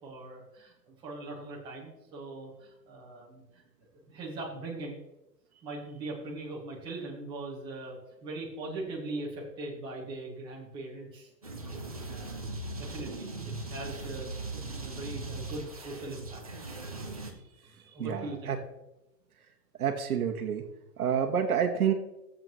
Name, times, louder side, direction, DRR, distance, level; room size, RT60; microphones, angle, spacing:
voice 1, 0.0-3.6 4.1-5.0 5.6-8.0 8.2-11.3 12.0-12.4 12.8-16.4 17.7-18.5, right 2 dB, 10° right, -5 dB, 1.4 m, -40 dB
sound 1, 11.4-17.3, right 2 dB, 25° right, 0.5 m, -39 dB
voice 2, 18.0-18.6 19.8-20.6 21.0-21.9, right 8 dB, 60° right, 5 dB, 1.3 m, -28 dB
14.5 x 7.7 x 3.1 m, 0.92 s
hypercardioid pair, 170°, 50 cm